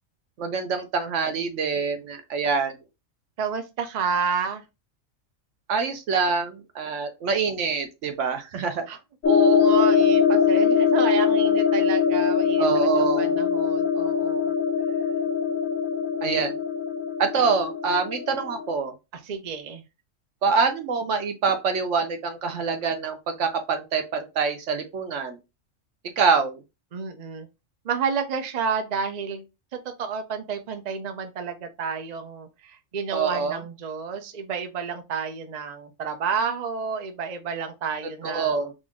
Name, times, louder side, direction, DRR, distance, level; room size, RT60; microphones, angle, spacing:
voice 1, 0.4-2.8 5.7-8.9 12.6-13.4 16.2-16.6 17.2-18.9 20.4-25.4 26.2-26.6 33.1-33.6 38.2-38.7, right 5 dB, 70° right, 1.0 m, -25 dB
voice 2, 3.4-4.6 8.9-9.0 9.3-14.5 19.2-19.8 26.9-27.5 27.8-29.5 29.7-38.7, right 6 dB, 50° right, 0.5 m, -30 dB
sound 1, 9.2-18.7, left 7 dB, 75° left, 1.2 m, -22 dB
3.6 x 2.6 x 3.5 m
omnidirectional pair, 1.4 m